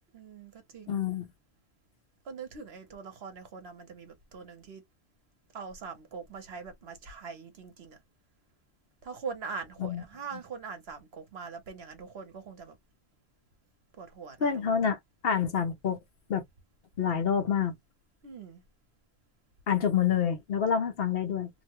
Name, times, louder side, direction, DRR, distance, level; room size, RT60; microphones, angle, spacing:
voice 1, 0.1-1.0 2.3-4.8 5.5-8.0 9.0-12.7 14.0-14.5 18.2-18.6, right 5 dB, 75° right, 1.1 m, -42 dB
voice 2, 0.9-1.3 9.8-10.0 10.3-10.4 14.4-16.0 16.3-16.4 17.0-17.7 19.7-21.5, left 7 dB, 65° left, 1.0 m, -27 dB
2.8 x 2.1 x 2.9 m
omnidirectional pair, 1.1 m